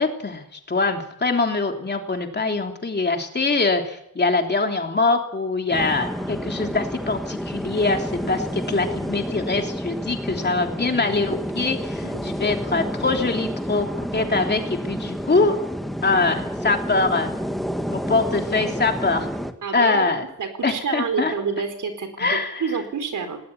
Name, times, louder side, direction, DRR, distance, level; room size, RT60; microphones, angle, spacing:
voice 1, 0.0-13.9 14.1-15.6 16.0-17.3 17.9-19.3 19.7-20.2 20.6-21.3 22.2-22.6, left 3 dB, 35° left, 3 dB, 3.3 m, -23 dB
sound 1, 5.7-19.5, equal, ahead, 1.6 m, -29 dB
voice 2, 19.6-20.1 20.4-23.4, right 5 dB, 85° right, 8 dB, 4.4 m, -28 dB
19.0 x 19.0 x 10.0 m, 0.74 s
wide cardioid pair, 130°, 30 cm